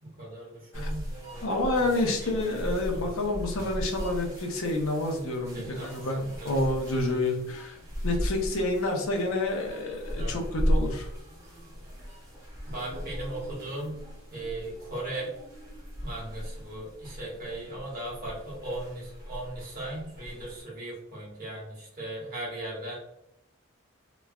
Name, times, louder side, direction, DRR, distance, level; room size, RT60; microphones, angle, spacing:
voice 1, 0.0-1.5 1.8-3.1 5.5-6.1 6.4-6.5 6.9-7.0 10.1-10.4 12.7-14.0 14.3-15.3 16.0-23.0, right 1 dB, 45° right, -4 dB, 1.1 m, -38 dB
sound 1, 0.7-20.6, equal, 15° right, 0.7 m, -36 dB
voice 2, 1.4-7.8 8.0-11.1, left 2 dB, 80° left, 2 dB, 0.6 m, -29 dB
3.0 x 2.2 x 2.4 m, 0.81 s
head